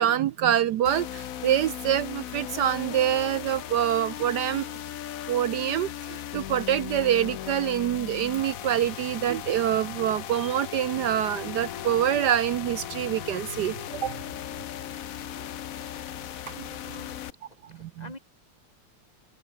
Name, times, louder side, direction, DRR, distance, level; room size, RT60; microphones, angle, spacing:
voice 1, 0.0-4.7 5.3-14.2 15.4-15.5 16.5-16.7 17.6-18.1, right 11 dB, 70° right, 1.0 m, -26 dB
sound 1, 0.8-17.3, left 11 dB, 65° left, 0.8 m, -37 dB
voice 2, 16.7-17.2 17.7-18.2, left 2 dB, 15° left, 4.1 m, -47 dB
open air
omnidirectional pair, 2.4 m